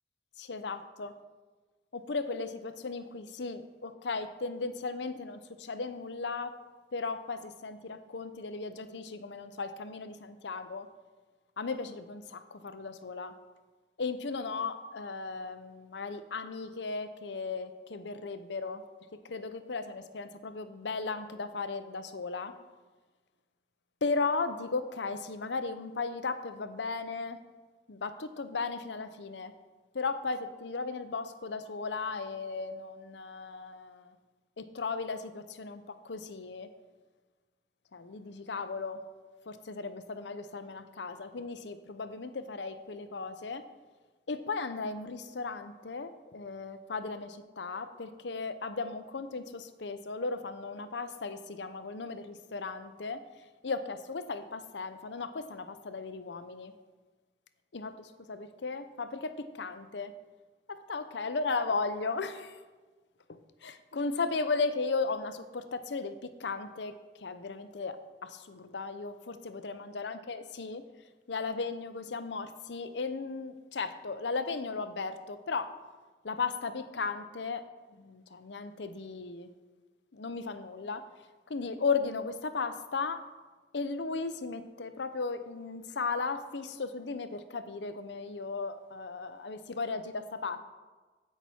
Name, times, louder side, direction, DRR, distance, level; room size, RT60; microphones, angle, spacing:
voice 1, 0.4-1.1 1.9-6.6 6.9-10.9 11.6-13.3 14.0-18.8 19.2-22.5 24.0-27.4 27.9-29.5 29.9-34.1 34.6-36.7 37.9-39.0 39.5-43.6 44.3-53.2 53.6-56.7 57.7-60.1 60.7-62.6 63.3-70.9 71.3-75.7 76.2-77.6 77.9-79.5 80.1-81.0 81.5-83.2 83.7-90.6, left 4 dB, 80° left, 11 dB, 0.7 m, -36 dB
15.0 x 5.9 x 4.3 m, 1.3 s
head